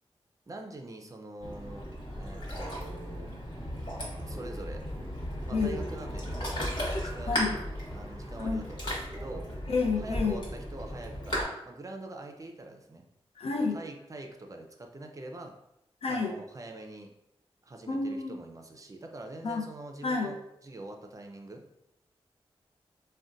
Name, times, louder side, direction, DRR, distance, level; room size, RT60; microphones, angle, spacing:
voice 1, 0.5-1.9 2.2-3.3 4.3-4.8 5.5-6.7 7.0-7.5 7.9-9.5 10.0-13.0 13.7-15.5 16.1-17.1 17.6-21.6, right 2 dB, 35° right, 3 dB, 0.4 m, -44 dB
Ocean, 1.4-11.4, equal, 50° left, 1.2 m, -36 dB
voice 2, 5.5-5.8 7.3-7.6 8.4-8.6 9.7-10.4 13.4-13.8 16.0-16.3 17.9-18.4 19.4-19.6 20.0-20.4, left 4 dB, 75° left, 1 dB, 0.5 m, -29 dB
3.8 x 2.1 x 2.5 m, 0.83 s
wide cardioid pair, 95°, 10 cm